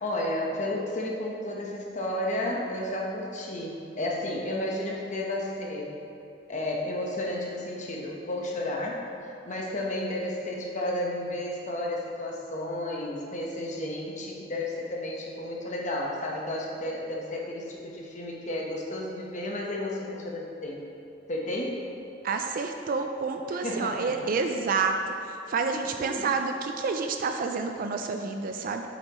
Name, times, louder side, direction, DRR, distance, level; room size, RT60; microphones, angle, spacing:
voice 1, 0.0-5.9 6.5-20.8 21.3-21.8 23.6-24.1 26.0-26.3, left 1 dB, 40° left, -1 dB, 1.1 m, -32 dB
voice 2, 22.2-28.8, right 4 dB, 45° right, 5 dB, 0.4 m, -29 dB
8.0 x 7.0 x 3.0 m, 2.7 s
head